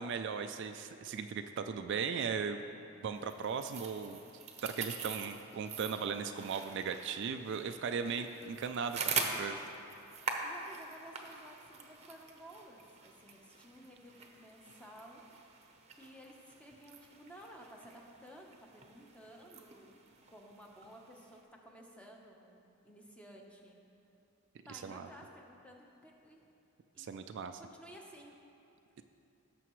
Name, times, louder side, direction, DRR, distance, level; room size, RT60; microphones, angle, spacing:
voice 1, 0.0-2.6 3.0-4.2 4.6-9.6 24.7-25.1 27.0-27.6, right 6 dB, 55° right, 8 dB, 0.3 m, -37 dB
sound 1, 3.2-21.4, right 5 dB, 30° right, 0.7 m, -44 dB
voice 2, 8.0-8.4 10.4-15.2 15.9-20.0 20.3-23.8 24.7-26.4 26.9-27.1 27.6-28.3, equal, 5° left, 0 dB, 0.8 m, -54 dB
17.0 x 6.9 x 3.1 m, 2.7 s
head